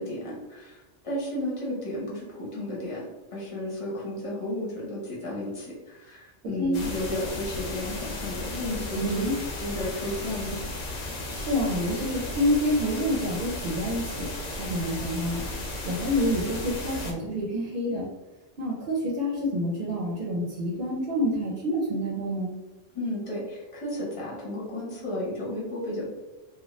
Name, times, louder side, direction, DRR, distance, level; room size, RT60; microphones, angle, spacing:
voice 1, 0.0-3.0 3.3-9.3 9.6-10.6 22.9-26.1, left 1 dB, 30° left, -5 dB, 0.9 m, -33 dB
sound 1, 6.7-17.1, left 1 dB, 85° left, 1.0 m, -35 dB
voice 2, 8.9-9.3 11.3-14.3 14.6-15.5 15.8-18.0 18.6-22.5, equal, 55° right, -4 dB, 0.7 m, -28 dB
2.9 x 2.2 x 3.0 m, 1.1 s
omnidirectional pair, 1.3 m